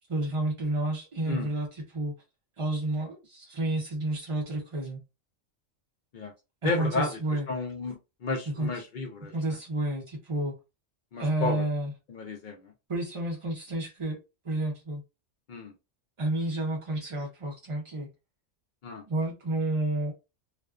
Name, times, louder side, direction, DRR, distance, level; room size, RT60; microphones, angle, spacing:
voice 1, 0.1-2.1 2.6-5.0 6.6-7.4 8.6-8.7 9.3-10.5 11.2-11.9 12.9-14.2 14.4-15.0 16.2-18.1 19.0-20.1, right 1 dB, 35° right, 0.5 m, -30 dB
voice 2, 6.6-7.2 7.5-9.3 11.1-11.7 12.1-12.7 15.5-15.7 18.8-19.0, left 3 dB, 60° left, 0.5 m, -32 dB
2.4 x 2.3 x 2.3 m
omnidirectional pair, 1.3 m